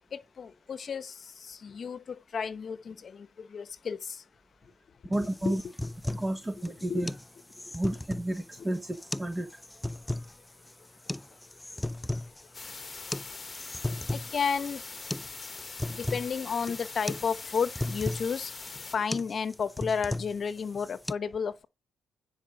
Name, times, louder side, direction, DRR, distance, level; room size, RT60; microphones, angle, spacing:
voice 1, 0.1-1.1 1.5-2.0 2.3-4.0 5.1-5.6 6.8-7.1 8.6-8.7 14.1-14.8 15.9-18.5 18.9-21.7, left 6 dB, 45° left, 1.1 m, -32 dB
sound 1, 5.1-21.1, left 1 dB, 10° left, 0.4 m, -37 dB
voice 2, 5.1-5.6 6.1-7.1 7.7-9.5, right 1 dB, 15° right, 1.4 m, -31 dB
sound 2, 12.5-19.0, left 4 dB, 30° left, 1.4 m, -42 dB
10.0 x 5.0 x 5.1 m
cardioid pair, 90°, 0 cm